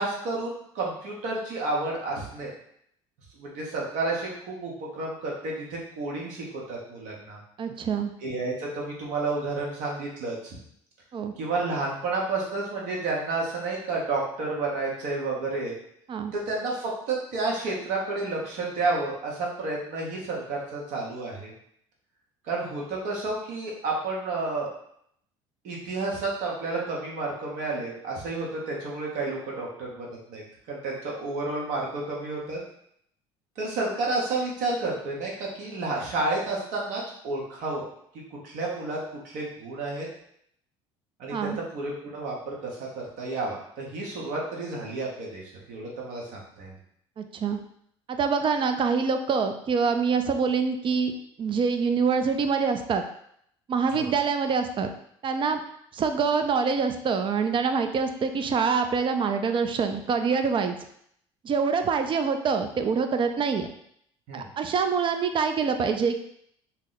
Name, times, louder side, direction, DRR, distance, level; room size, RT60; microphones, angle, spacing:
voice 1, 0.0-2.5 3.4-7.4 8.2-10.6 11.4-15.8 16.3-21.5 22.4-24.7 25.6-32.6 33.6-35.3 35.6-37.8 38.4-39.0 39.2-40.1 41.2-46.7 53.9-54.1 64.3-64.5, right 3 dB, 65° right, -3 dB, 1.1 m, -31 dB
voice 2, 7.6-8.1 11.1-11.3 16.1-16.3 41.3-41.6 47.2-47.6 48.1-51.1 51.4-53.0 53.7-54.9 55.2-55.6 55.9-60.8 61.4-63.7 64.3-66.2, right 5 dB, 35° right, 7 dB, 0.4 m, -25 dB
2.8 x 2.0 x 3.9 m, 0.70 s
hypercardioid pair, 70°, 14 cm